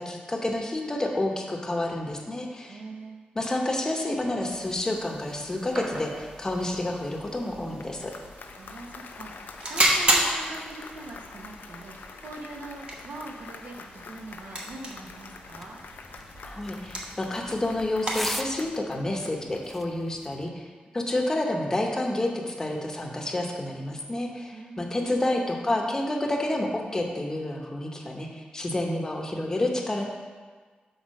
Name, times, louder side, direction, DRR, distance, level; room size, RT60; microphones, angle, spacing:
voice 1, 0.0-2.8 3.3-8.1 16.4-30.0, left 1 dB, 20° left, 1 dB, 0.8 m, -29 dB
voice 2, 2.7-3.2 8.6-15.8 24.5-25.2, right 2 dB, 75° right, 1 dB, 1.0 m, -42 dB
sound 1, 4.5-18.6, right 1 dB, 40° right, 1.1 m, -33 dB
Applause, 7.6-20.1, left 5 dB, 85° left, 0.5 m, -46 dB
sound 2, 15.5-20.5, equal, ahead, 0.4 m, -40 dB
6.3 x 4.8 x 6.3 m, 1.5 s
wide cardioid pair, 170°, 3 cm